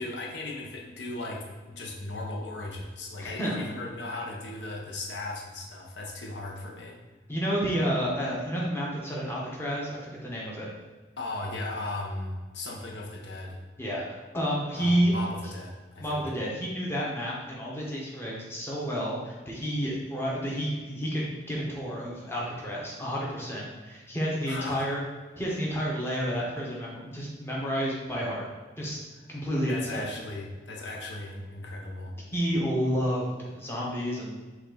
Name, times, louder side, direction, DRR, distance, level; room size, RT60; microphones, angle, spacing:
voice 1, 0.0-7.0 11.2-13.6 14.8-16.2 24.5-24.9 29.7-32.1, left 2 dB, 85° left, -1 dB, 0.8 m, -37 dB
voice 2, 3.2-3.5 7.3-10.7 13.8-15.1 16.0-25.0 25.4-28.5 28.8-29.0 29.3-30.0 32.3-34.4, equal, 15° left, -5 dB, 0.9 m, -30 dB
5.8 x 2.4 x 3.8 m, 1.3 s
head